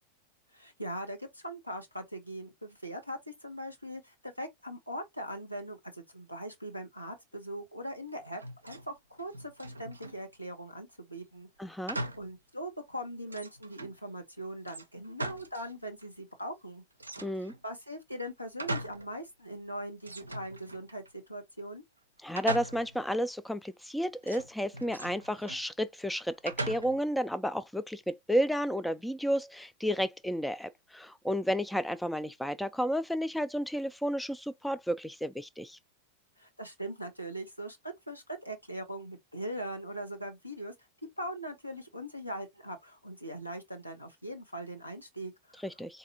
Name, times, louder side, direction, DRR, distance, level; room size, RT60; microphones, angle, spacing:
voice 1, 0.5-11.5 11.9-16.8 17.6-21.8 36.4-40.7 41.2-45.6, right 1 dB, 90° left, 1.0 m, -41 dB
sound 1, 8.3-8.9 9.2-10.2 11.9-12.4 12.8-12.9 13.3-14.0 14.7-15.7 16.0-16.1 17.0-17.6 18.2-19.1 19.5-19.6 20.0-21.1 22.4-23.1 24.2-25.7 26.5-27.1, right 1 dB, 80° right, 0.4 m, -39 dB
voice 2, 11.6-12.0 17.2-17.5 22.2-35.8 45.6-46.0, equal, 5° left, 0.3 m, -32 dB
4.0 x 2.5 x 2.7 m
figure-of-eight pair, 90°, 0 cm